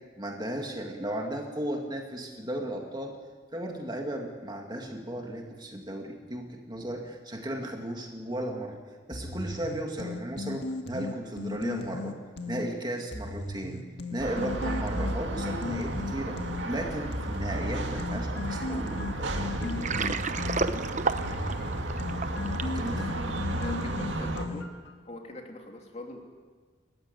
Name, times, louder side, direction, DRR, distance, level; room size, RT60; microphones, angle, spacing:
voice 1, 0.2-3.2 3.5-8.8 9.1-12.2 12.5-13.8 14.1-19.3 19.6-20.1 22.6-23.0, right 1 dB, 25° right, 1 dB, 2.3 m, -35 dB
sound 1, 9.1-12.7 13.1-16.7 17.1-24.9, left 3 dB, 65° left, 1.9 m, -37 dB
sound 2, 14.2-24.5, right 1 dB, 85° right, 2.1 m, -33 dB
Water, 19.6-22.8, right 4 dB, 40° right, 0.9 m, -31 dB
voice 2, 22.9-24.7 25.0-26.2, left 1 dB, 35° left, 2 dB, 3.0 m, -42 dB
29.0 x 14.5 x 8.2 m, 1.5 s
head